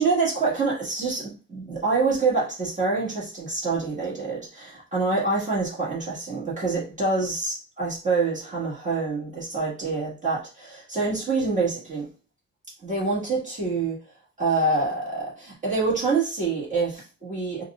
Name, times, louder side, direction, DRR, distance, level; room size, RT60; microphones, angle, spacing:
voice 1, 0.0-12.1 12.8-14.0 14.4-17.6, right 3 dB, 25° right, -6 dB, 1.7 m, -26 dB
4.0 x 2.5 x 2.4 m, 0.33 s
cardioid pair, 90°, 30 cm